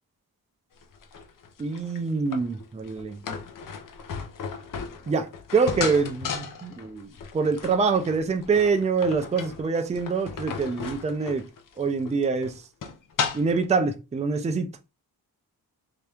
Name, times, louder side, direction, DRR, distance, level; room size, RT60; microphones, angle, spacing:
sound 1, 0.8-13.6, left 6 dB, 60° left, 0.7 m, -35 dB
voice 1, 1.6-3.2 5.1-11.4 11.8-12.5 13.3-14.7, right 4 dB, 20° right, 0.4 m, -25 dB
3.5 x 2.8 x 3.4 m
wide cardioid pair, 160°, 37 cm